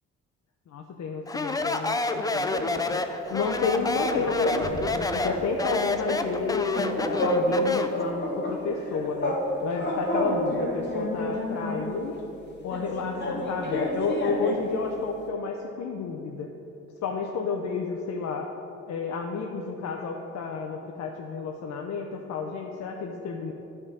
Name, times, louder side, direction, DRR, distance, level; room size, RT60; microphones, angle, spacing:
voice 1, 0.7-9.4 9.6-12.2 12.6-16.5 17.0-18.5 18.9-23.5, left 4 dB, 65° left, 1 dB, 0.7 m, -31 dB
Speech, 1.3-8.0, left 2 dB, 10° left, 0.4 m, -29 dB
sound 1, 3.5-4.9 5.2-5.4 5.7-7.6 7.9-9.5 9.7-11.9 12.7-14.7, left 1 dB, 35° left, 1.6 m, -29 dB
9.7 x 3.7 x 6.1 m, 3.0 s
cardioid pair, 90°, 30 cm